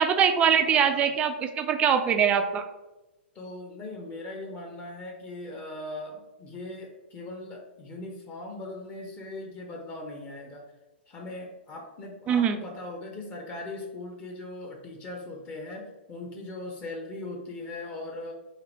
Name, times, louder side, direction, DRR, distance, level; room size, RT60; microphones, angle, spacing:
voice 1, 0.0-2.6 12.3-12.6, right 8 dB, 20° right, 7 dB, 0.4 m, -22 dB
voice 2, 0.6-1.2 3.3-10.7 11.1-18.3, left 2 dB, 25° left, 1 dB, 0.7 m, -39 dB
3.2 x 2.8 x 3.9 m, 1.0 s
figure-of-eight pair, 115°, 6 cm